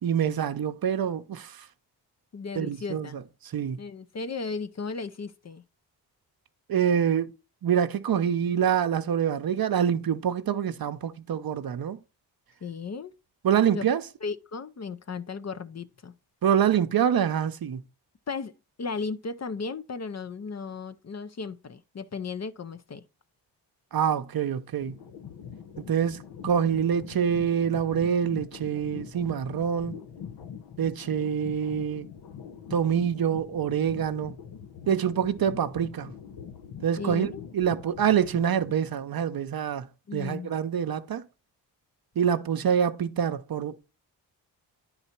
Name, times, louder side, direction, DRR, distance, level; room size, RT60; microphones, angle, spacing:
voice 1, 0.0-1.7 2.6-3.8 6.7-7.3 7.6-12.0 13.4-14.0 16.4-17.8 23.9-25.0 25.8-30.0 30.8-32.1 32.7-34.4 34.9-36.1 36.8-41.2 42.2-43.9, right 8 dB, 50° right, 0.7 m, -26 dB
voice 2, 2.3-3.2 3.8-5.6 12.6-13.1 13.7-13.8 14.2-16.1 18.3-18.5 18.8-23.0 37.0-37.4 40.1-40.5, left 4 dB, 35° left, 0.6 m, -35 dB
sound 1, 24.8-39.0, left 7 dB, 65° left, 0.9 m, -43 dB
9.8 x 4.0 x 4.4 m
cardioid pair, 55°, 45 cm